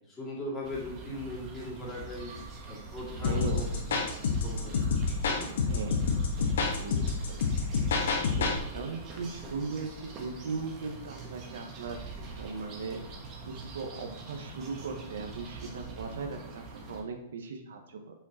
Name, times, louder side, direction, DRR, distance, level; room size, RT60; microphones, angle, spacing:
voice 1, 0.0-2.4 2.6-3.8 4.4-5.6 9.4-9.5, left 1 dB, 10° left, -5 dB, 2.2 m, -40 dB
sound 1, 0.6-17.0, right 3 dB, 20° right, 1.2 m, -44 dB
sound 2, 3.2-8.6, left 4 dB, 70° left, 1.4 m, -28 dB
voice 2, 3.2-3.6 5.7-7.0 7.3-7.6 8.2-13.0 13.4-18.2, right 4 dB, 90° right, 4 dB, 1.1 m, -39 dB
7.2 x 5.6 x 4.2 m, 0.80 s
supercardioid pair, 175°, 0 cm